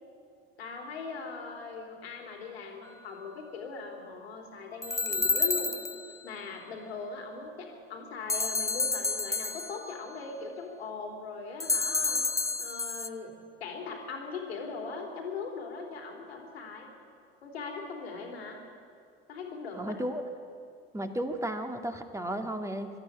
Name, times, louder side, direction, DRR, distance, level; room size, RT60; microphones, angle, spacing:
voice 1, 0.6-5.8 6.2-13.3 13.6-16.9 17.4-18.6 19.3-19.9, left 4 dB, 75° left, 2 dB, 3.3 m, -40 dB
sound 1, 4.8-6.2 8.3-10.0 11.6-13.1, left 3 dB, 10° left, 1.0 m, -30 dB
voice 2, 19.7-20.2 20.9-22.9, right 1 dB, 10° right, 5 dB, 2.1 m, -33 dB
23.5 x 12.5 x 10.0 m, 2.4 s
figure-of-eight pair, 60°, 31 cm